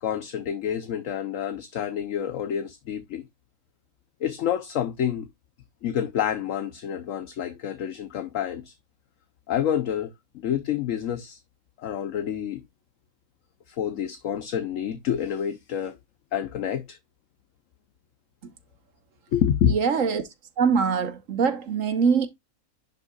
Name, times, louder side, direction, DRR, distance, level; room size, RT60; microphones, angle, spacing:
voice 1, 0.0-3.2 4.2-5.3 5.8-8.7 9.5-10.1 10.3-11.4 11.8-12.6 13.7-15.9 16.3-17.0 19.3-19.7, left 9 dB, 65° left, 1.1 m, -28 dB
voice 2, 19.7-20.2 20.6-22.3, right 6 dB, 60° right, 1.4 m, -23 dB
10.5 x 5.6 x 2.3 m
omnidirectional pair, 1.6 m